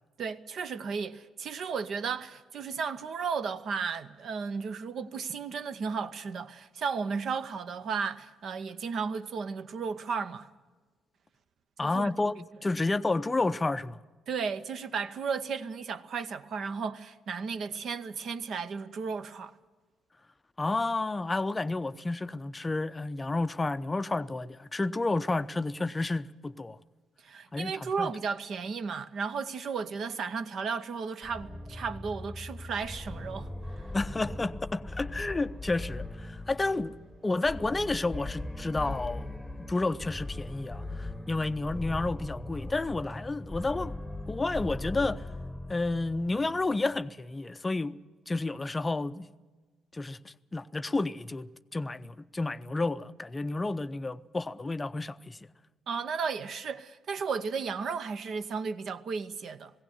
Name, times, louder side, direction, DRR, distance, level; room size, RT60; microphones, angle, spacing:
voice 1, 0.2-10.5 11.8-12.1 14.3-19.5 27.2-33.5 55.9-59.7, right 5 dB, 50° right, 0.8 m, -34 dB
voice 2, 11.8-14.0 20.6-26.8 27.5-28.1 33.9-36.9 37.2-39.3 39.7-44.0 44.3-45.3 45.7-48.0 48.3-49.3 49.9-55.4, left 2 dB, 20° left, 0.6 m, -31 dB
sound 1, 31.2-46.9, left 1 dB, ahead, 1.1 m, -40 dB
18.5 x 17.0 x 9.5 m
figure-of-eight pair, 45°, 0 cm